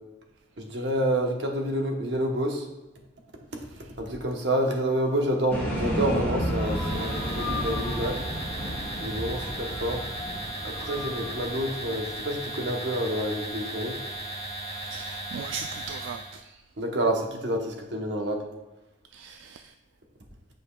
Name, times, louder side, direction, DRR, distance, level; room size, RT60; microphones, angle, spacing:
voice 1, 0.6-2.6 4.0-8.2 9.0-10.0 10.6-14.0 16.8-18.4, right 1 dB, 70° right, 1.0 m, -28 dB
sound 1, 5.5-12.3, equal, 10° left, 1.6 m, -32 dB
sound 2, 6.5-16.4, right 1 dB, 30° right, 1.7 m, -36 dB
voice 2, 14.6-16.6 19.1-19.7, right 6 dB, 90° right, 0.3 m, -39 dB
8.8 x 5.2 x 2.3 m
head